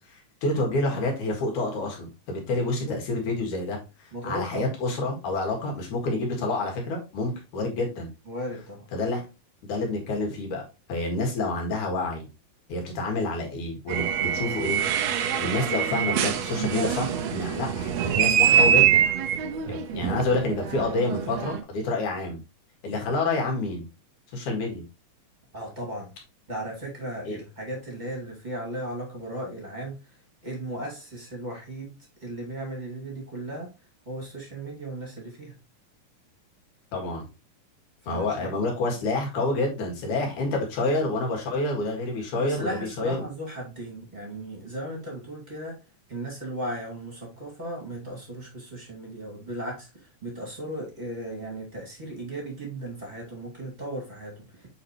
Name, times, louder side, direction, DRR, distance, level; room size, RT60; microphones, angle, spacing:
voice 1, 0.1-8.1 8.9-9.2 9.6-12.3 12.7-15.1 15.4-22.4 22.8-23.9 24.3-24.8 27.3-27.4 36.9-37.2 38.1-42.7 43.0-43.2, left 2 dB, 65° left, 0 dB, 3.2 m, -28 dB
voice 2, 4.1-4.7 8.3-8.9 25.5-26.1 26.5-30.0 30.4-33.7 34.1-35.5 38.0-38.6 40.8-41.0 42.4-45.8 46.1-54.7, right 1 dB, 15° right, -1 dB, 1.8 m, -36 dB
sound 1, 13.9-21.6, right 8 dB, 75° right, 1.6 m, -24 dB
7.8 x 4.2 x 3.0 m, 0.28 s
omnidirectional pair, 3.9 m